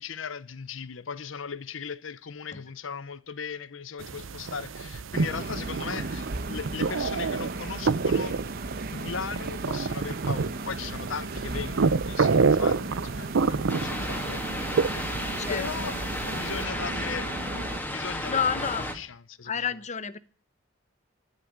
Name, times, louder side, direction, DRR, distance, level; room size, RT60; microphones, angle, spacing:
voice 1, 0.0-8.4 8.9-14.9 15.5-15.9 16.3-17.5 17.8-18.6 18.9-19.5, left 6 dB, 85° left, 0.8 m, -37 dB
sound 1, 4.0-16.6, right 4 dB, 75° right, 0.6 m, -29 dB
sound 2, 5.1-17.8, right 2 dB, 50° right, 1.0 m, -36 dB
sound 3, 13.7-18.9, left 1 dB, 10° left, 2.2 m, -33 dB
voice 2, 18.3-18.9 19.4-20.2, left 7 dB, 40° left, 0.9 m, -29 dB
11.5 x 10.5 x 9.1 m
head